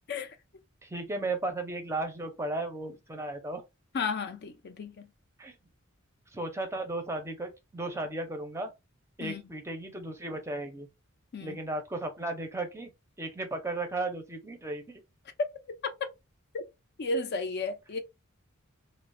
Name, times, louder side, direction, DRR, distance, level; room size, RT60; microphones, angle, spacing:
voice 1, 0.8-3.6 5.4-5.5 6.3-8.7 9.2-10.9 11.4-12.9 13.2-15.0, right 2 dB, 15° right, 0.5 m, -35 dB
voice 2, 3.9-5.1 9.2-9.5 11.3-11.6 15.8-15.9 16.5-16.6 17.0-18.0, left 3 dB, 50° left, 0.4 m, -33 dB
3.0 x 2.0 x 2.5 m
head